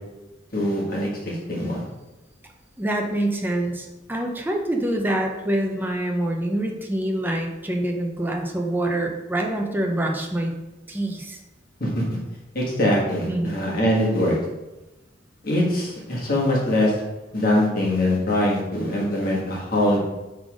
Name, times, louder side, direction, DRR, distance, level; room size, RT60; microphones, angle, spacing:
voice 1, 0.5-1.8 11.8-12.0 12.5-14.4 15.4-16.9 17.3-20.0, left 1 dB, 50° left, -4 dB, 1.7 m, -22 dB
voice 2, 2.8-10.5 10.9-11.4 13.3-13.6, right 1 dB, 10° right, 1 dB, 0.6 m, -25 dB
5.7 x 3.8 x 4.8 m, 1.1 s
head